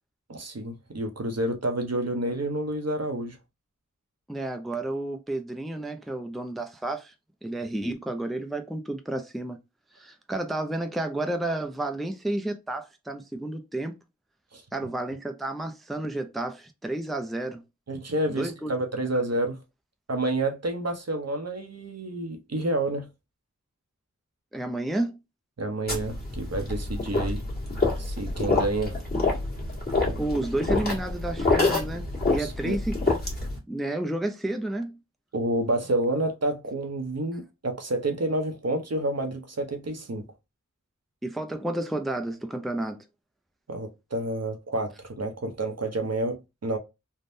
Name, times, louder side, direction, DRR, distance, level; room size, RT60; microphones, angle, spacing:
voice 1, 0.3-3.4 14.5-14.9 17.9-19.6 20.1-23.1 25.6-27.4 28.0-29.0 32.4-32.8 35.3-40.3 43.7-46.8, right 1 dB, 55° right, 0.7 m, -29 dB
voice 2, 4.3-7.1 7.4-9.6 9.9-13.9 14.7-17.6 18.3-18.7 24.5-25.2 30.2-33.0 33.7-35.0 41.2-43.0, right 1 dB, ahead, 0.5 m, -31 dB
sound 1, 25.9-33.6, left 3 dB, 30° left, 1.4 m, -27 dB
3.4 x 2.1 x 2.6 m
wide cardioid pair, 45°, 30 cm